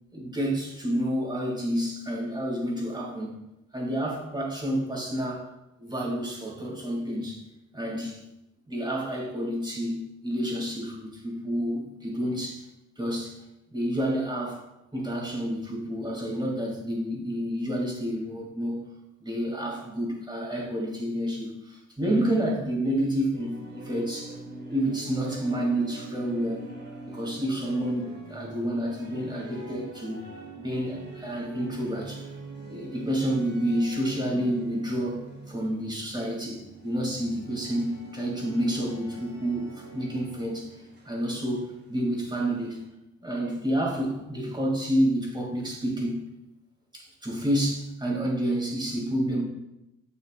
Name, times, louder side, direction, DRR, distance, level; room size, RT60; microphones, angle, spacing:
voice 1, 0.1-3.4 3.7-5.5 5.8-7.4 7.7-8.2 8.7-12.7 13.0-13.4 13.7-14.6 14.9-18.9 19.2-24.4 24.7-26.6 27.0-30.2 30.6-32.3 32.7-40.8 41.0-42.8 43.2-46.3 46.9-49.4, equal, 15° right, -2 dB, 2.6 m, -29 dB
sound 1, 23.3-42.9, right 2 dB, 35° right, 2.1 m, -44 dB
9.6 x 6.5 x 2.5 m, 0.92 s
cardioid pair, 90°, 30 cm